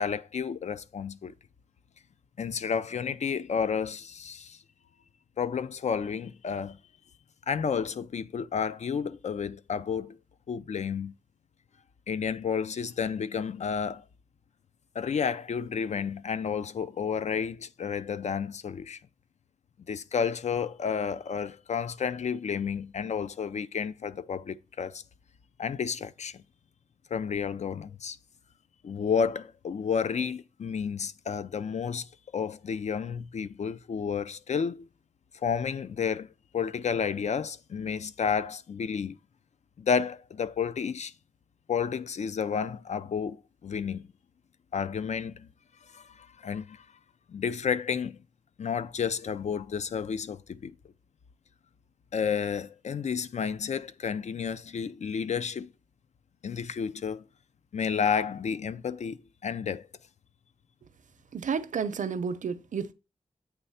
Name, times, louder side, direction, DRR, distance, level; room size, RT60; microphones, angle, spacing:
voice 1, 0.0-1.3 2.4-4.6 5.4-6.8 7.5-10.2 10.5-11.1 12.1-14.0 14.9-19.0 19.9-25.0 25.6-26.4 27.1-28.2 28.8-34.9 35.4-39.2 39.8-41.1 41.7-44.1 44.7-45.5 45.9-46.9 47.3-48.2 48.6-50.7 52.1-55.7 56.4-57.2 57.7-59.9, left 6 dB, 60° left, 0.4 m, -31 dB
voice 2, 61.3-62.9, right 6 dB, 75° right, 0.6 m, -31 dB
8.1 x 3.3 x 5.5 m
wide cardioid pair, 105°, 13 cm